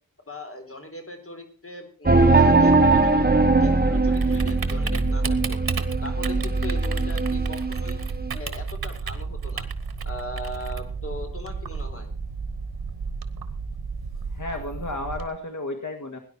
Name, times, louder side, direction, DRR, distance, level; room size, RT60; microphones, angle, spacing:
voice 1, 0.3-3.3 3.6-5.6 6.0-8.0 8.3-9.7 10.0-12.1, left 1 dB, 40° left, 5 dB, 3.8 m, -39 dB
sound 1, 2.1-8.3, right 3 dB, 25° right, 1.2 m, -20 dB
Typing, 2.6-15.2, right 5 dB, 90° right, 1.3 m, -33 dB
voice 2, 14.3-16.2, left 2 dB, 55° left, 5 dB, 2.0 m, -32 dB
18.0 x 10.5 x 4.4 m, 0.38 s
wide cardioid pair, 70°, 36 cm